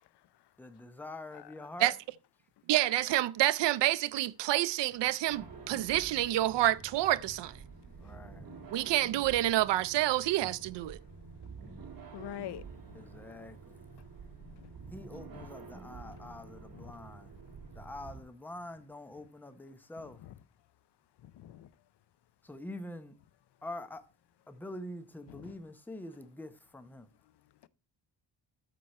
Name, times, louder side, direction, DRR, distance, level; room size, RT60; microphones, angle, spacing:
voice 1, 0.6-1.9 8.0-8.6 12.9-13.9 14.9-17.3 17.7-20.2 22.4-23.1 23.6-24.0 24.5-27.1, left 1 dB, 5° left, 0.7 m, -45 dB
voice 2, 2.7-7.5 8.7-11.0, right 15 dB, 75° right, 0.5 m, -28 dB
sound 1, 5.3-18.2, right 4 dB, 55° right, 2.0 m, -49 dB
voice 3, 12.1-12.6 14.6-14.7 15.3-15.5 16.7-16.9 20.2-20.3 21.3-21.7 25.3-25.5, left 13 dB, 70° left, 0.6 m, -44 dB
13.0 x 4.7 x 4.1 m
wide cardioid pair, 145°, 42 cm